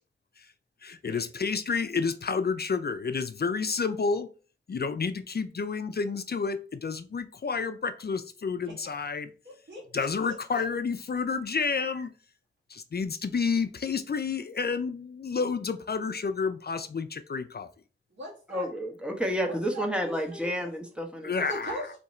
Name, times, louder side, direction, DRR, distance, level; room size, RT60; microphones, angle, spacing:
voice 1, 0.8-4.3 4.7-9.3 9.9-12.1 12.7-17.7 21.2-21.9, left 5 dB, 55° left, 9 dB, 0.4 m, -30 dB
voice 2, 8.7-9.1 9.4-10.6 18.1-18.7 19.4-20.7 21.3-22.0, equal, 70° right, -5 dB, 1.6 m, -41 dB
voice 3, 18.5-21.3, equal, 5° right, 3 dB, 1.0 m, -30 dB
3.6 x 2.8 x 4.2 m, 0.37 s
wide cardioid pair, 65°, 20 cm